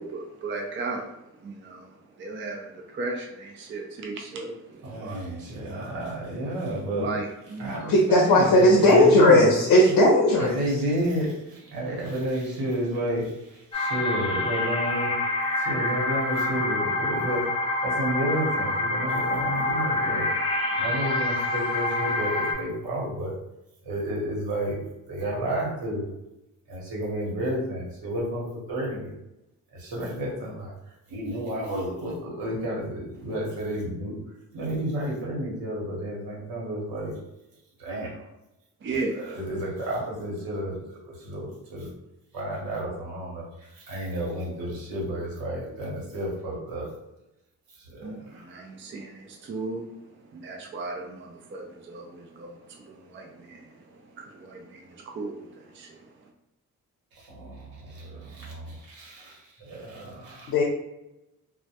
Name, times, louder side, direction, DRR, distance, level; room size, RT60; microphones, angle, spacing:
voice 1, 0.0-6.0 6.9-7.9 9.8-9.9 20.7-20.8 38.8-39.4 48.0-49.9 50.2-56.3, right 3 dB, 35° right, 1 dB, 0.4 m, -36 dB
voice 2, 4.8-7.1 7.6-9.4 10.4-15.1 15.6-17.5 17.8-20.3 20.8-23.3 23.8-26.0 26.7-29.1 29.7-30.7 31.1-34.2 34.5-37.2 37.8-38.1 38.9-41.9 42.3-46.9 47.8-48.4 57.1-60.5, right 1 dB, 80° right, -4 dB, 0.9 m, -31 dB
voice 3, 7.9-10.6 60.5-60.6, left 1 dB, 75° left, -1 dB, 0.6 m, -17 dB
sound 1, 13.7-22.5, left 2 dB, 15° left, 0.6 m, -27 dB
2.1 x 2.1 x 2.8 m, 0.92 s
cardioid pair, 75°, 35 cm